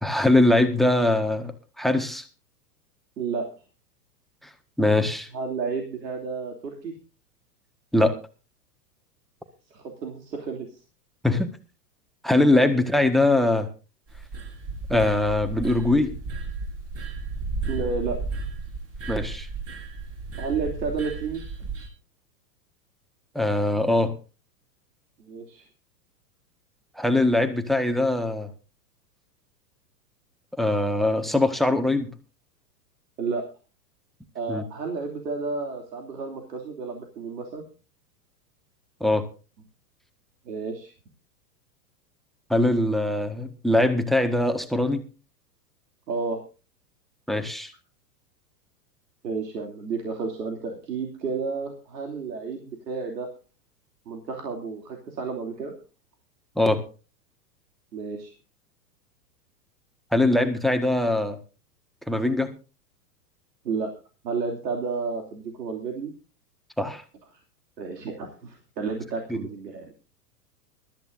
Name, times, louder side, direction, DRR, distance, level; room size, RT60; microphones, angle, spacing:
voice 1, 0.0-1.5 1.8-2.2 4.8-5.3 7.9-8.2 11.2-11.5 12.2-13.7 14.9-16.1 19.1-19.5 23.3-24.1 27.0-28.5 30.6-32.1 34.5-34.6 39.0-39.3 42.5-45.0 47.3-47.7 56.6-56.8 60.1-61.4 62.1-62.6 66.8-67.0 69.3-69.4, left 2 dB, ahead, 10 dB, 1.5 m, -22 dB
voice 2, 3.2-3.5 5.3-6.9 9.7-10.8 11.2-11.4 12.6-12.8 17.7-18.2 20.4-21.4 25.2-25.6 33.2-33.4 34.3-37.6 40.5-40.9 46.1-46.4 49.2-53.3 54.1-55.7 57.9-58.3 63.6-63.9 64.2-66.1 67.8-69.9, right 4 dB, 80° right, 2 dB, 3.0 m, -31 dB
sound 1, 14.1-21.9, right 3 dB, 30° right, 4.9 m, -34 dB
22.5 x 13.5 x 2.6 m, 0.33 s
hypercardioid pair, 115°, 49 cm